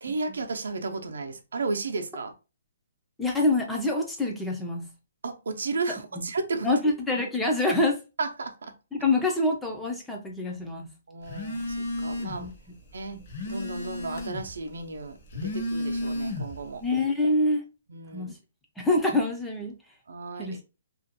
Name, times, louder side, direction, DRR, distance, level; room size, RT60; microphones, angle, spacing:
voice 1, 0.0-2.3 5.2-6.7 8.2-8.7 11.1-12.5 12.9-16.8 17.9-18.3 20.1-20.6, right 3 dB, 90° right, 0.5 m, -33 dB
voice 2, 3.2-4.9 6.2-6.3 6.6-8.0 8.9-10.9 12.4-12.5 13.1-13.3 16.8-17.6 18.1-18.3 18.8-19.7 20.4-20.6, left 2 dB, 5° left, 0.3 m, -26 dB
Telephone, 11.3-12.5 12.9-14.6 15.2-16.7, left 1 dB, 35° left, 0.6 m, -32 dB
2.4 x 2.1 x 2.7 m
hypercardioid pair, 175°, 0 cm